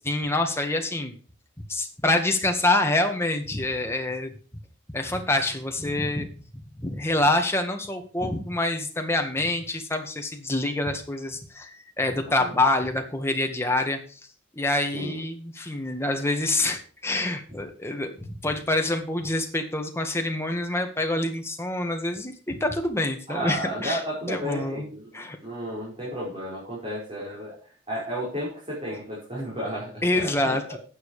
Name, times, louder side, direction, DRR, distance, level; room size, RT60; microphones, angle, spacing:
voice 1, 0.0-1.1 1.7-4.3 4.9-6.3 6.8-14.2 14.5-24.0 24.3-24.9 25.1-25.4 30.0-30.8, left 2 dB, 15° left, 4 dB, 1.8 m, -26 dB
voice 2, 14.9-15.2 23.3-27.5 27.9-30.8, equal, 30° right, -8 dB, 5.7 m, -33 dB
9.7 x 9.1 x 5.0 m, 0.39 s
head